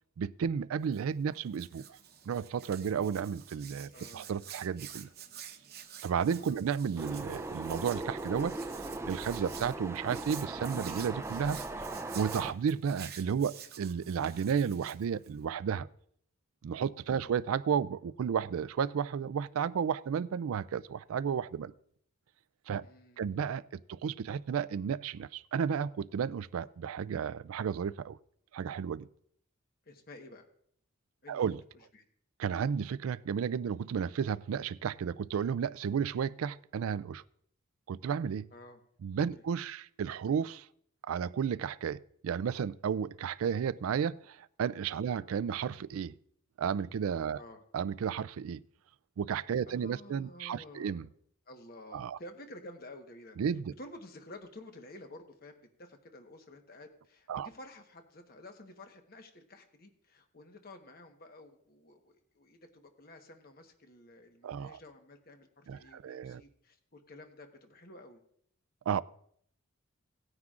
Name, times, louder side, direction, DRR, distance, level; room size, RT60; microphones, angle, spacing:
voice 1, 0.2-2.0 2.3-5.1 6.0-8.6 9.1-11.6 12.1-15.9 16.6-21.7 22.7-22.8 23.2-28.2 28.5-29.1 31.3-31.6 32.4-37.2 37.9-38.5 39.0-40.7 41.1-46.1 46.6-47.4 47.7-48.6 49.2-51.1 51.9-52.2 53.4-53.7 57.3-57.5 64.4-64.8 65.7-66.4 68.9-69.0, right 7 dB, 80° right, 0.3 m, -33 dB
Hands, 0.8-15.4, right 9 dB, 45° right, 0.9 m, -50 dB
voice 2, 3.9-4.3 6.4-6.7 17.1-17.3 22.8-23.4 29.9-30.5 31.2-32.0 38.5-38.8 39.3-39.4 45.1-45.2 47.3-47.6 49.7-51.0 51.5-53.4 53.8-68.2, left 1 dB, 45° left, 1.2 m, -52 dB
sound 1, 7.0-12.5, right 2 dB, 15° right, 0.4 m, -39 dB
18.0 x 9.6 x 2.5 m
head